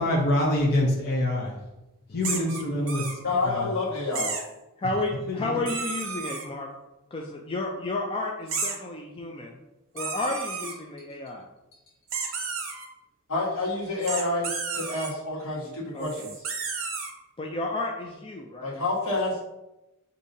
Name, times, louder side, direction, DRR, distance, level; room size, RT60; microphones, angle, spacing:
voice 1, 0.0-1.6 2.1-3.2 3.4-3.7 5.3-5.7, left 1 dB, 45° left, -3 dB, 0.7 m, -25 dB
sound 1, 2.2-3.1 4.1-4.5 5.6-6.5 8.5-8.8 10.0-10.7 12.1-12.9 14.0-15.1 16.0-17.1, right 4 dB, 60° right, 0.8 m, -32 dB
voice 2, 3.2-4.3 13.3-16.3 18.6-19.4, left 2 dB, 75° left, -5 dB, 1.4 m, -28 dB
voice 3, 4.8-6.7 7.1-9.6 9.9-11.4 15.9-16.3 17.4-18.8, left 2 dB, 25° left, 0 dB, 0.3 m, -32 dB
6.4 x 2.7 x 2.7 m, 0.97 s
head